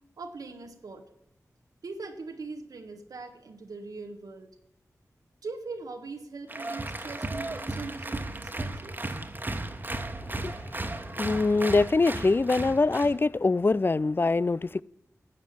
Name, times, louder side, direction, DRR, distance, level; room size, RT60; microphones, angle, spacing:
voice 1, 0.2-1.0 1.8-4.5 5.4-9.0, right 3 dB, 90° right, 1.3 m, -41 dB
Applause, 6.5-13.2, right 2 dB, 30° right, 1.3 m, -35 dB
voice 2, 10.4-10.8 11.2-14.8, left 3 dB, 35° left, 0.3 m, -24 dB
12.5 x 7.7 x 7.4 m
cardioid pair, 45°, 6 cm